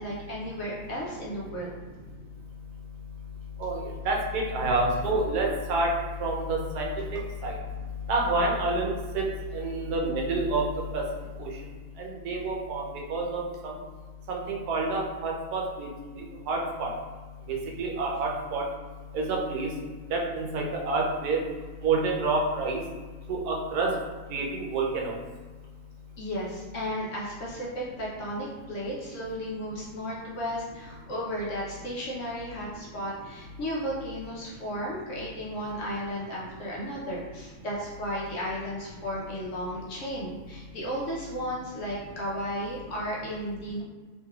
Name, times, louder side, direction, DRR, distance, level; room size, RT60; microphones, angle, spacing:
voice 1, 0.0-1.7 26.2-43.8, equal, 65° left, -5 dB, 0.9 m, -34 dB
voice 2, 3.6-7.5 8.1-9.3 9.5-11.1 11.4-11.5 12.0-12.8 13.1-13.8 14.3-15.9 16.2-16.9 17.5-18.7 19.1-19.7 20.1-21.4 21.8-22.8 23.3-24.0 24.3-25.2, right 2 dB, 80° right, 0 dB, 1.1 m, -28 dB
3.1 x 3.0 x 2.3 m, 1.3 s
omnidirectional pair, 1.6 m